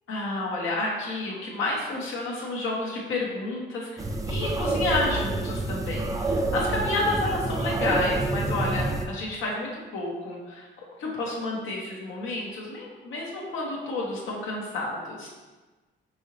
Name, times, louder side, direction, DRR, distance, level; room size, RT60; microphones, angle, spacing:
voice 1, 0.1-10.7 11.0-15.3, left 2 dB, 80° left, -3 dB, 1.2 m, -30 dB
sound 1, 4.0-9.1, right 2 dB, 15° right, 0.4 m, -28 dB
5.3 x 2.9 x 3.0 m, 1.2 s
cardioid pair, 90°, 20 cm